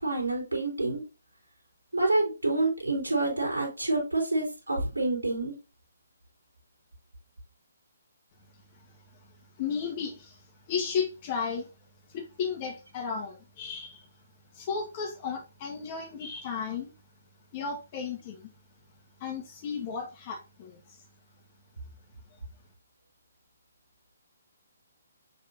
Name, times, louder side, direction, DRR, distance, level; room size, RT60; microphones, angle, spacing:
voice 1, 0.0-1.0 1.9-5.5, right 2 dB, 90° right, 3.4 m, -27 dB
voice 2, 9.6-10.4 10.7-11.7 12.1-14.1 14.5-16.9 17.5-18.5 19.2-21.0, left 6 dB, 35° left, 1.6 m, -34 dB
6.8 x 5.6 x 2.8 m
figure-of-eight pair, 140°, 0 cm